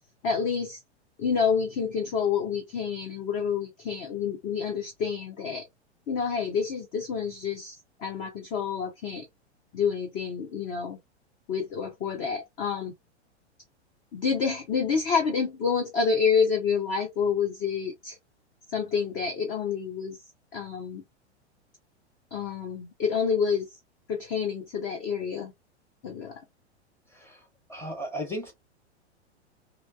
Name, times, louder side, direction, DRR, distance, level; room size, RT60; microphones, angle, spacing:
voice 1, 0.2-0.8 1.2-5.7 6.1-9.3 9.7-11.0 11.5-12.9 14.1-18.2 18.7-20.2 20.5-21.0 22.3-23.7 24.1-25.5 26.0-26.4, left 6 dB, 25° left, 0.4 m, -28 dB
voice 2, 27.1-28.5, equal, 5° left, 0.9 m, -36 dB
2.8 x 2.2 x 2.2 m
figure-of-eight pair, 100°, 34 cm